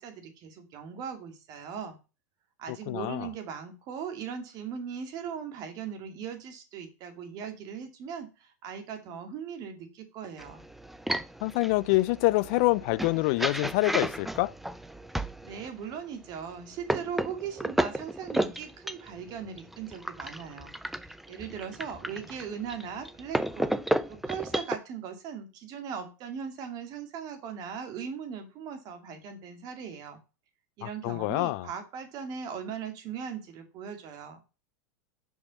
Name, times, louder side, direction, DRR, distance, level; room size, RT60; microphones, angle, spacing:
voice 1, 0.0-2.0 2.6-10.6 15.4-20.7 21.3-23.8 24.1-30.2 30.8-34.4, right 7 dB, 45° right, 2.1 m, -39 dB
voice 2, 2.7-3.3 11.4-14.5 30.8-31.7, left 21 dB, 55° left, 0.4 m, -26 dB
sound 1, 10.4-15.7 16.3-24.8, right 1 dB, ahead, 0.4 m, -33 dB
6.0 x 5.5 x 4.2 m
hypercardioid pair, 120°, 9 cm